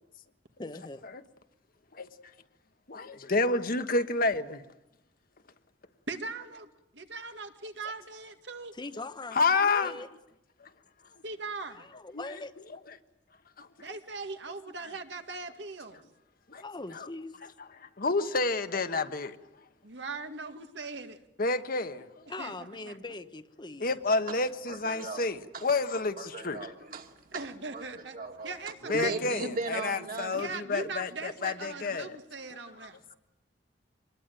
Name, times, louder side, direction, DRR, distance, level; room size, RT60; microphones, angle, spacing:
voice 1, 0.6-1.0 8.7-10.1 11.7-12.5 16.6-17.4 22.3-23.9, left 2 dB, 25° left, 0.9 m, -41 dB
voice 2, 2.9-4.6 9.3-10.0 10.6-10.7 12.1-12.2 13.6-13.9 16.5-16.6 16.9-17.1 17.8-19.4 21.4-22.1 23.8-26.7 28.9-32.1, left 3 dB, 50° left, 1.3 m, -29 dB
voice 3, 6.1-8.8 11.2-11.9 13.8-16.0 19.8-21.2 22.4-22.5 22.9-23.0 27.3-28.2 28.4-29.1 30.3-33.0, right 3 dB, 70° right, 2.0 m, -40 dB
voice 4, 24.7-25.3 25.5-25.7 26.2-27.4 27.7-28.6 28.8-30.5 33.1-33.2, right 3 dB, 50° right, 2.6 m, -37 dB
25.0 x 21.0 x 9.1 m
head